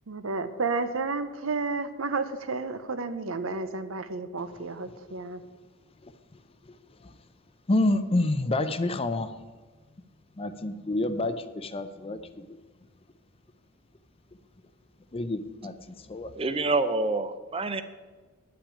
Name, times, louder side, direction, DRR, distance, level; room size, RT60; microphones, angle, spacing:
voice 1, 0.1-5.4, right 3 dB, 75° right, 11 dB, 0.7 m, -31 dB
voice 2, 7.7-9.3 10.4-12.6 15.1-16.3, left 2 dB, 25° left, 11 dB, 0.5 m, -28 dB
voice 3, 16.4-17.8, right 3 dB, 25° right, 11 dB, 0.6 m, -27 dB
10.0 x 5.9 x 8.5 m, 1.3 s
head